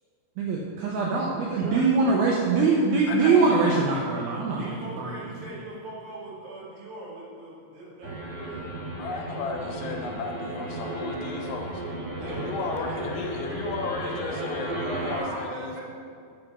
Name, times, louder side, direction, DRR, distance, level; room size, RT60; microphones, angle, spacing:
voice 1, 0.4-5.1, right 4 dB, 75° right, -2 dB, 2.2 m, -23 dB
voice 2, 1.5-2.1 4.6-8.7 12.2-13.0 14.9-15.8, right 1 dB, 60° right, -6 dB, 3.4 m, -40 dB
voice 3, 3.1-3.8 9.0-11.8 12.3-15.8, left 4 dB, 80° left, 2 dB, 2.8 m, -34 dB
sound 1, 8.0-15.2, right 1 dB, 35° right, 0.9 m, -34 dB
8.8 x 5.7 x 6.1 m, 2.4 s
omnidirectional pair, 5.0 m